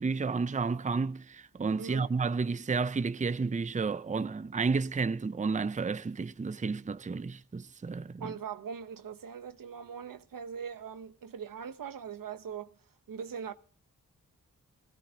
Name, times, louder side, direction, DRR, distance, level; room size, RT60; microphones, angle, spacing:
voice 1, 0.0-8.3, right 4 dB, 25° right, 0.5 m, -31 dB
voice 2, 1.8-2.1 8.2-12.8 13.1-13.5, right 7 dB, 85° right, 0.9 m, -41 dB
21.0 x 16.0 x 2.8 m
cardioid pair, 55°, 32 cm